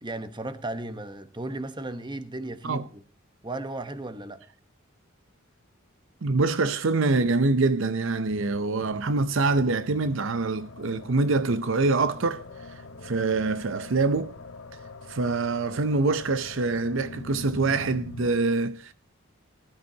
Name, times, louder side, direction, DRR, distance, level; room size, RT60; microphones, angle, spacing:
voice 1, 0.0-3.0 3.4-4.4, right 2 dB, 20° right, 1.1 m, -35 dB
voice 2, 6.2-12.4 12.7-14.3 15.1-18.9, right 3 dB, 65° right, 0.6 m, -25 dB
sound 1, 8.8-18.3, left 2 dB, 75° left, 1.4 m, -43 dB
19.5 x 12.5 x 2.8 m
head